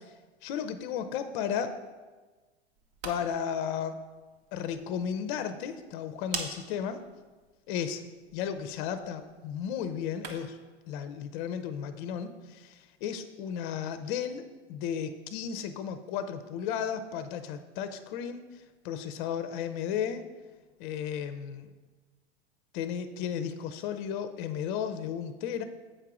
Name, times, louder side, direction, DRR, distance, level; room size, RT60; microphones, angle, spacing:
voice 1, 0.4-1.8 3.0-4.0 4.5-7.0 7.7-8.0 8.3-10.6 10.9-18.5 18.8-20.3 20.8-21.7 22.7-25.6, left 8 dB, 45° left, 10 dB, 0.6 m, -34 dB
sound 1, 2.7-10.7, right 4 dB, 60° right, 1.2 m, -46 dB
7.7 x 4.6 x 4.8 m, 1.3 s
figure-of-eight pair, 95°, 34 cm